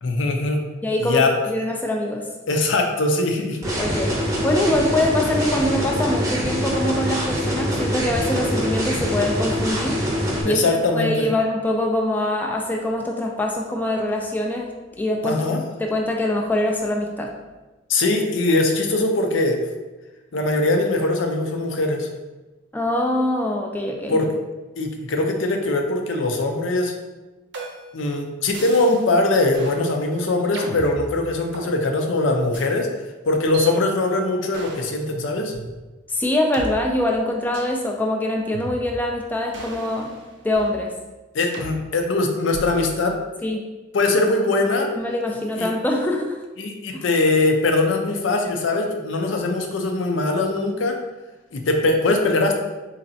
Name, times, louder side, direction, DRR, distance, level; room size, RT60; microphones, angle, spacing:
voice 1, 0.0-0.7 1.0-1.4 2.5-3.6 10.4-11.3 15.2-15.6 17.9-19.6 20.3-22.1 24.1-24.3 24.8-26.9 27.9-32.9 33.3-35.5 41.3-43.2 43.9-44.9 45.6-45.7 46.6-51.0 51.5-52.6, left 2 dB, 75° left, 3 dB, 0.5 m, -21 dB
voice 2, 0.8-2.2 3.8-10.0 10.4-15.4 15.8-17.3 22.7-24.2 36.1-40.1 40.4-40.9 43.4-43.6 45.0-46.4, left 1 dB, 10° left, 0 dB, 0.3 m, -24 dB
sound 1, 3.6-10.4, equal, 20° right, 0.7 m, -24 dB
sound 2, 27.5-28.0 28.5-29.1 29.5-29.8 30.5-31.7 32.5-32.7 33.5-33.7 34.5-35.0 35.5-35.6 36.5-36.7 37.5-37.8 38.5-39.1 39.5-40.8 41.5-41.7 42.5-42.9, right 2 dB, 65° right, 0.7 m, -36 dB
3.9 x 3.2 x 2.7 m, 1.1 s
head